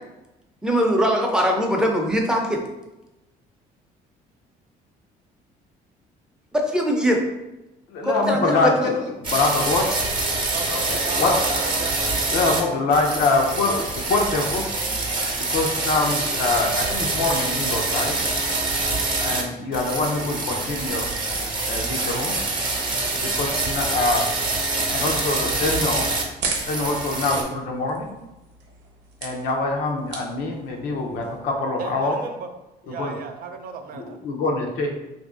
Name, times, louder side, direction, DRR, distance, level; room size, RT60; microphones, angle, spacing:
voice 1, 0.6-2.6 6.5-7.2 8.0-8.9, equal, 5° right, 1 dB, 0.6 m, -21 dB
voice 2, 7.9-10.1 10.7-11.6 12.3-14.6 15.5-18.2 19.2-21.1 21.7-22.4 23.1-24.3 24.9-26.1 26.7-28.1 29.2-32.2 32.9-33.1 33.9-34.9, left 3 dB, 80° left, 1 dB, 0.7 m, -24 dB
sound 1, 9.2-12.6 12.9-19.4 19.7-26.2 26.5-27.4, right 2 dB, 30° right, 0.9 m, -25 dB
voice 3, 10.5-12.3 13.4-13.7 31.8-32.5 32.8-34.2, right 5 dB, 60° right, 6 dB, 0.5 m, -36 dB
sound 2, 22.9-31.5, right 4 dB, 85° right, 0.8 m, -38 dB
3.0 x 2.6 x 3.6 m, 0.98 s
cardioid pair, 110°, 17 cm